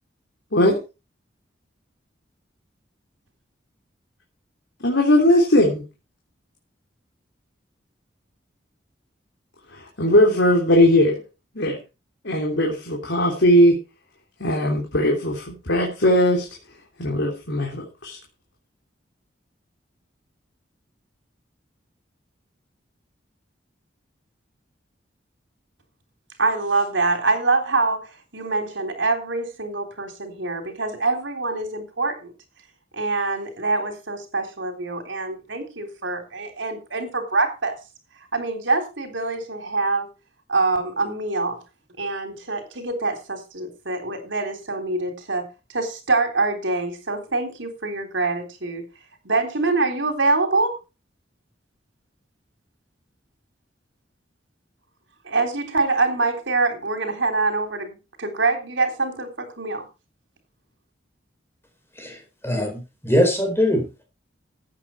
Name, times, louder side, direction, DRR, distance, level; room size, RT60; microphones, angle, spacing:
voice 1, 0.5-0.8 4.8-5.8 9.7-11.2 11.5-11.8 12.2-13.8 14.4-16.5 17.0-18.2, left 1 dB, 75° left, 3.2 m, -19 dB
voice 2, 26.4-32.3 32.9-37.7 38.3-40.1 40.5-41.6 42.0-45.5 45.7-48.9 49.2-50.8 55.2-59.9, right 3 dB, 80° right, 3.6 m, -25 dB
voice 3, 62.0-63.9, equal, 15° left, 4.6 m, -22 dB
14.5 x 8.8 x 4.5 m
head